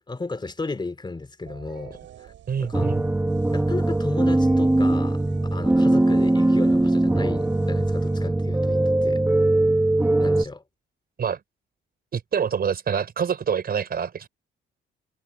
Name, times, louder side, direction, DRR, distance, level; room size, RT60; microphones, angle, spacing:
voice 1, 0.1-2.3 2.6-2.9 3.5-5.2 5.5-9.2 10.2-10.6, left 3 dB, 20° left, 3.0 m, -34 dB
sound 1, 1.5-9.1, right 11 dB, 75° right, 7.0 m, -48 dB
voice 2, 2.5-3.0 11.2-11.4 12.1-14.3, right 7 dB, 50° right, 5.0 m, -26 dB
sound 2, 2.7-10.4, right 2 dB, 10° right, 1.2 m, -21 dB
cardioid pair, 90°, 20 cm